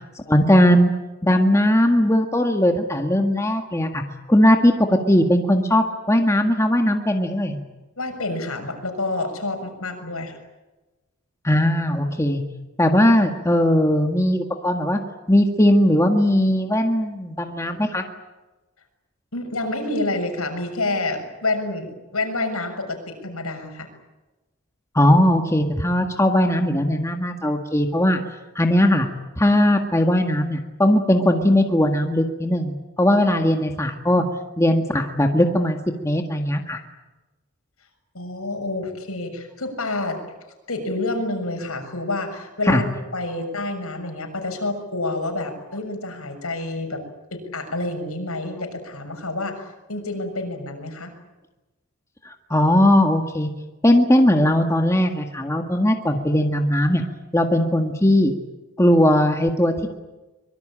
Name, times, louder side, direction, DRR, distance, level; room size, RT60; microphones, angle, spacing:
voice 1, 0.3-0.9 1.2-4.0 4.3-7.6 11.4-12.4 12.8-15.0 15.3-18.0 24.9-28.2 28.6-29.1 29.4-34.2 34.6-35.8 36.0-36.8 42.7-42.8 52.3-53.5 53.8-57.0 57.3-58.3 58.8-59.9, left 1 dB, 15° left, 4 dB, 1.8 m, -19 dB
voice 2, 8.0-10.4 19.3-23.9 34.1-34.2 38.1-40.2 40.7-47.0 47.3-51.1, left 2 dB, 75° left, 5 dB, 6.8 m, -28 dB
25.0 x 22.5 x 8.9 m, 1.1 s
head